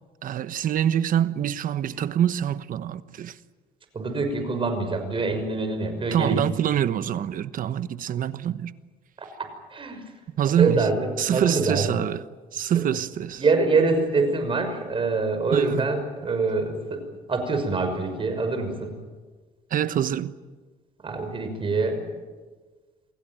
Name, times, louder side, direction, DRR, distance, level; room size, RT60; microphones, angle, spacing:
voice 1, 0.2-3.4 6.1-8.7 10.4-10.9 11.2-12.2 12.5-13.4 15.5-15.9 19.7-20.3, right 10 dB, 55° right, 1.1 m, -25 dB
voice 2, 3.9-6.4 9.7-10.0 10.6-11.9 13.4-17.0 17.3-19.0 21.0-22.1, right 3 dB, 30° right, 6.1 m, -25 dB
28.0 x 17.5 x 9.1 m
cardioid pair, 110°, 17 cm